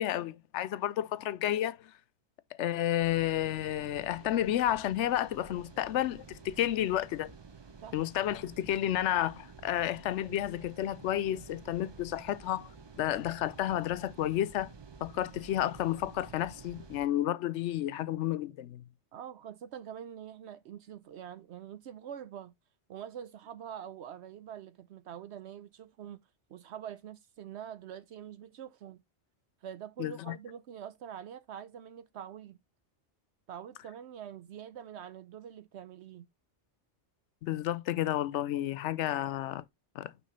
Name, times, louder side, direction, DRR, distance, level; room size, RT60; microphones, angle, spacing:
voice 1, 0.0-1.9 2.6-7.3 7.9-12.7 13.0-14.7 15.0-18.8 30.0-30.4 37.4-39.6 40.0-40.1, left 12 dB, 80° left, 0.9 m, -31 dB
sound 1, 3.0-17.1, right 5 dB, 30° right, 0.5 m, -51 dB
voice 2, 19.1-22.5 22.9-26.2 26.5-29.0 29.6-32.6 33.5-36.3, right 9 dB, 70° right, 0.9 m, -45 dB
6.3 x 3.0 x 5.5 m
omnidirectional pair, 1.2 m